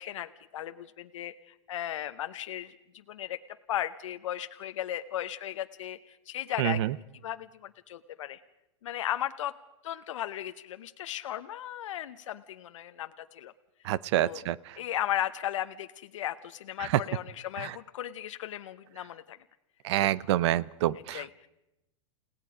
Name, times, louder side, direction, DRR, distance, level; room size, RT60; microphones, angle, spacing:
voice 1, 0.0-2.7 3.1-3.4 3.7-6.8 7.2-8.4 8.8-9.5 9.8-13.5 14.1-14.4 14.8-19.4 21.1-21.5, left 12 dB, 75° left, 9 dB, 0.8 m, -36 dB
voice 2, 6.6-6.9 13.9-14.6 16.8-16.9 17.6-17.7 19.8-21.2, right 13 dB, 60° right, 21 dB, 0.7 m, -27 dB
30.0 x 17.5 x 5.0 m, 0.91 s
hypercardioid pair, 120°, 16 cm